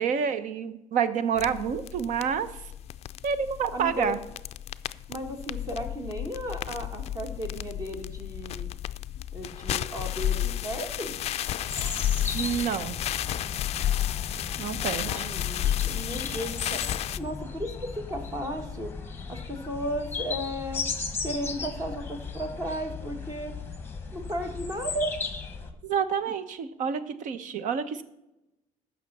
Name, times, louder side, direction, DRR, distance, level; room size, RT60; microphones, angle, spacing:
voice 1, 0.0-2.5 3.2-4.2 12.3-13.0 14.6-15.3 25.8-28.0, right 7 dB, 60° right, 13 dB, 0.8 m, -28 dB
sound 1, 1.4-17.2, left 12 dB, 45° left, 0.4 m, -32 dB
voice 2, 3.7-4.2 5.1-8.7 9.3-11.2 15.0-16.8 17.2-18.9 19.3-20.8 21.2-23.5 24.1-25.1, equal, 25° right, 5 dB, 1.7 m, -34 dB
sound 2, 11.6-25.7, left 5 dB, 15° left, 1.2 m, -36 dB
15.0 x 5.8 x 4.2 m, 0.93 s
cardioid pair, 125°, 15 cm